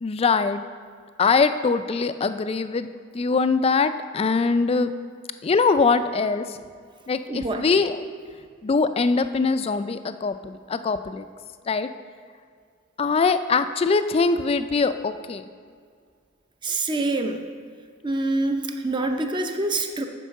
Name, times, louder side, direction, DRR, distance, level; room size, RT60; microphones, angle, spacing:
voice 1, 0.0-0.6 1.2-4.9 5.4-6.5 7.1-8.0 8.6-11.3 11.7-11.9 13.0-15.4, left 4 dB, 30° left, 11 dB, 0.3 m, -22 dB
voice 2, 7.3-7.6 16.6-17.5 18.0-20.0, right 2 dB, 25° right, 5 dB, 0.5 m, -26 dB
9.2 x 4.6 x 6.3 m, 2.1 s
head